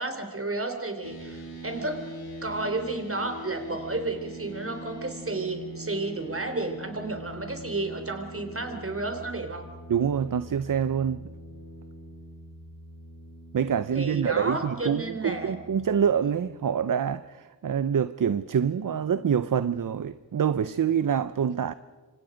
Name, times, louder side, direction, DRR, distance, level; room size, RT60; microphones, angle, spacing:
voice 1, 0.0-2.1 2.4-9.6 13.9-15.5, right 2 dB, 40° right, 3.4 m, -32 dB
sound 1, 1.0-16.1, right 1 dB, 90° left, 3.0 m, -43 dB
voice 2, 9.9-11.3 13.5-21.7, right 8 dB, 60° right, 0.6 m, -26 dB
26.5 x 26.0 x 5.1 m
wide cardioid pair, 75°, 36 cm